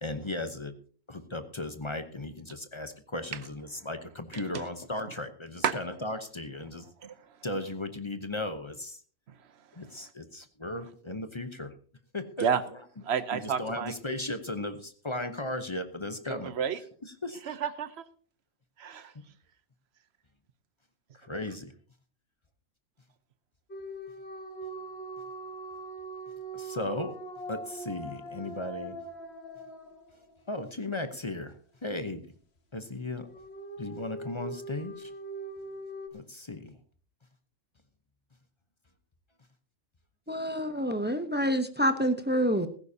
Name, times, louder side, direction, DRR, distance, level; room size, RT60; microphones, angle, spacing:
voice 1, 0.0-0.8 1.1-6.9 7.4-9.0 9.7-11.7 12.1-12.5 12.7-12.8 13.3-16.6 17.0-17.4 19.1-19.2 21.1-21.7 26.5-27.1 27.5-29.0 30.5-31.6 31.8-32.3 32.7-33.3 33.8-35.1 36.1-36.8, left 2 dB, 25° left, 0.7 m, -36 dB
voice 2, 13.0-14.2 16.3-16.8 17.5-18.0 18.8-19.1, right 7 dB, 55° right, 1.0 m, -30 dB
sound 1, 23.7-30.6 33.2-36.1, right 2 dB, 45° left, 1.7 m, -41 dB
voice 3, 40.3-42.7, equal, 10° right, 0.5 m, -27 dB
16.0 x 14.5 x 2.8 m
omnidirectional pair, 1.5 m